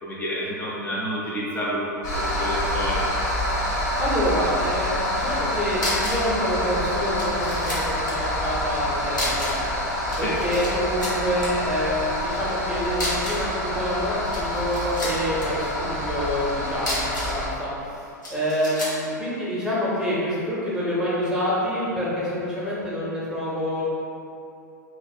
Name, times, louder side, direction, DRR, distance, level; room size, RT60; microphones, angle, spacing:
voice 1, 0.0-3.1 10.2-10.4, equal, 15° left, -6 dB, 0.4 m, -29 dB
sound 1, 2.0-17.5, left 1 dB, 60° left, 0.9 m, -27 dB
voice 2, 3.7-9.6 10.2-23.9, equal, 5° right, -8 dB, 0.8 m, -27 dB
sound 2, 5.8-6.3 6.6-6.7 7.2-8.2 9.1-9.7 10.0-10.7 11.0-11.5 12.9-13.5 14.2-15.5 16.7-17.4 18.2-19.0, left 1 dB, 90° left, 0.8 m, -31 dB
2.6 x 2.4 x 2.3 m, 2.6 s
figure-of-eight pair, 95°, 10 cm